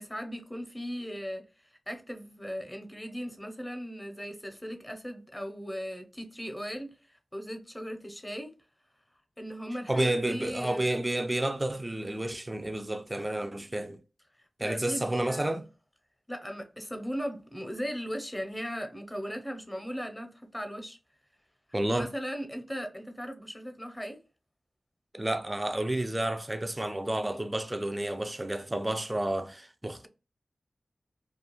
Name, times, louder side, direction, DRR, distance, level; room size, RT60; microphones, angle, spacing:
voice 1, 0.0-1.4 1.9-8.5 9.4-10.9 14.6-15.6 16.3-21.0 21.9-24.2, equal, 10° left, 0.6 m, -38 dB
voice 2, 9.9-14.0 14.6-15.7 21.7-22.1 25.1-30.1, right 1 dB, 20° right, 0.3 m, -30 dB
2.4 x 2.3 x 2.9 m
cardioid pair, 55°, 0 cm